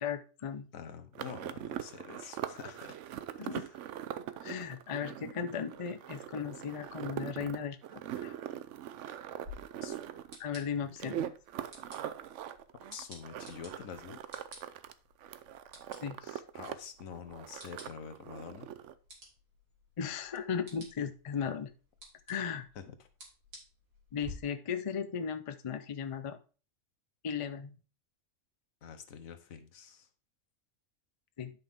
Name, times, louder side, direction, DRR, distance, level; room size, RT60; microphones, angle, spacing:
voice 1, 0.0-0.7 3.4-3.6 4.4-8.3 10.4-11.3 16.0-16.4 20.0-21.7 22.3-22.7 24.1-26.4 27.2-27.7 31.4-31.5, left 7 dB, 40° left, 10 dB, 0.5 m, -36 dB
voice 2, 0.7-3.0 3.4-3.8 9.8-10.0 12.9-14.2 16.5-18.7 22.7-22.9 28.8-30.1, left 7 dB, 85° left, 10 dB, 1.3 m, -46 dB
sound 1, 1.2-14.9 15.2-16.7 17.0-18.9, right 10 dB, 70° right, 0.9 m, -42 dB
sound 2, 9.4-24.3, equal, 90° right, 3.0 m, -55 dB
9.8 x 5.6 x 3.5 m, 0.36 s
omnidirectional pair, 1.4 m